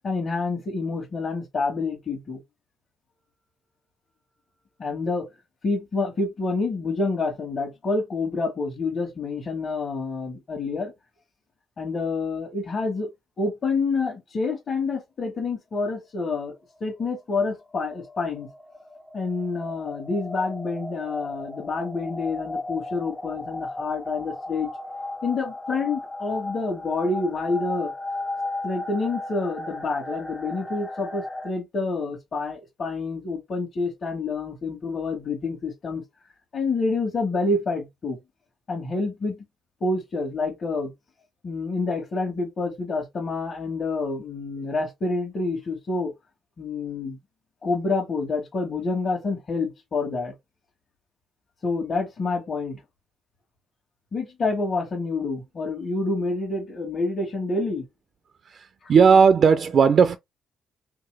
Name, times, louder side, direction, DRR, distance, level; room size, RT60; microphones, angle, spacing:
voice 1, 0.0-2.4 4.8-5.3 5.6-10.9 11.8-13.1 13.4-18.5 19.1-24.7 25.2-27.9 28.6-36.0 36.5-38.2 38.7-39.5 39.8-40.9 41.4-46.1 46.6-47.2 47.6-50.3 51.6-52.8 54.1-57.9 58.8-58.9, left 3 dB, 45° left, 1.3 m, -28 dB
sound 1, 17.4-31.5, left 2 dB, 15° left, 0.6 m, -35 dB
voice 2, 58.4-60.2, right 6 dB, 55° right, 0.3 m, -17 dB
2.9 x 2.9 x 3.2 m
cardioid pair, 90°, 0 cm